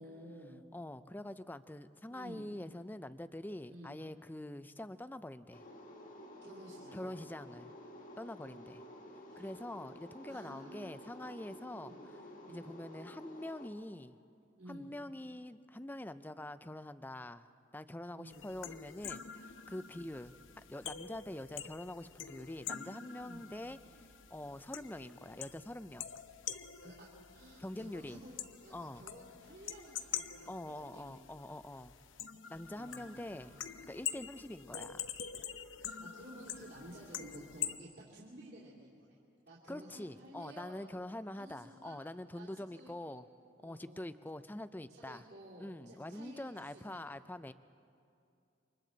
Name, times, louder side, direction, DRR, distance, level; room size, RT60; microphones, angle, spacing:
voice 1, 0.0-0.6 2.1-2.5 3.7-4.0 6.4-7.1 9.3-9.8 10.3-10.9 11.2-11.4 11.7-12.0 12.4-12.7 14.6-14.9 18.1-18.4 19.9-20.1 23.2-23.4 26.8-28.4 28.6-31.1 32.7-33.6 35.8-39.2 39.5-42.0 42.3-43.2 43.6-44.1 44.9-47.0, right 1 dB, 55° right, -7 dB, 3.1 m, -53 dB
voice 2, 0.7-5.6 6.9-7.7 8.2-8.8 9.4-11.9 12.5-14.2 14.7-17.5 17.7-26.1 27.6-28.2 28.7-29.0 30.5-32.0 32.5-35.1 39.7-43.3 43.6-45.2 45.6-47.5, left 1 dB, 10° left, 12 dB, 0.5 m, -45 dB
sound 1, 5.5-13.7, left 1 dB, 45° left, 1.7 m, -52 dB
sound 2, 18.3-37.8, left 9 dB, 80° left, 0.8 m, -46 dB
28.5 x 25.5 x 4.0 m, 2.5 s
head